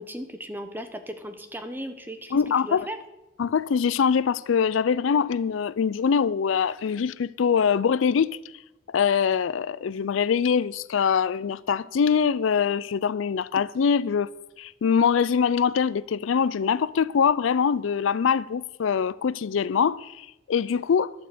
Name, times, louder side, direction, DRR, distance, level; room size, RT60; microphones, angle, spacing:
voice 1, 0.0-3.0, equal, 10° right, 1.0 m, -37 dB
voice 2, 2.3-2.9 3.4-8.4 8.9-14.3 14.6-21.1, left 6 dB, 80° left, 0.4 m, -23 dB
11.5 x 7.8 x 7.7 m
head